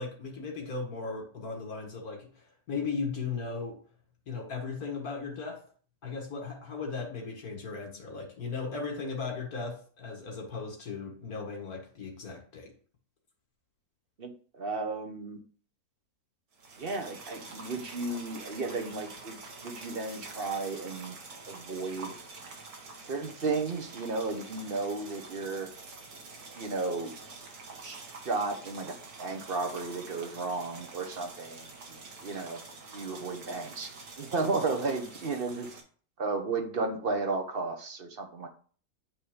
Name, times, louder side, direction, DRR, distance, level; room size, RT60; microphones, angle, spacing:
voice 1, 0.0-3.8 4.3-5.6 6.0-12.7, left 4 dB, 75° left, 1 dB, 2.1 m, -37 dB
voice 2, 14.2-15.4 16.8-21.2 21.5-22.2 23.1-25.7 26.5-27.1 27.8-32.6 32.9-35.7 36.2-38.5, right 3 dB, 45° right, 5 dB, 1.1 m, -34 dB
sound 1, 16.5-35.8, right 3 dB, 80° right, 1.9 m, -47 dB
9.0 x 3.3 x 5.0 m, 0.43 s
omnidirectional pair, 1.6 m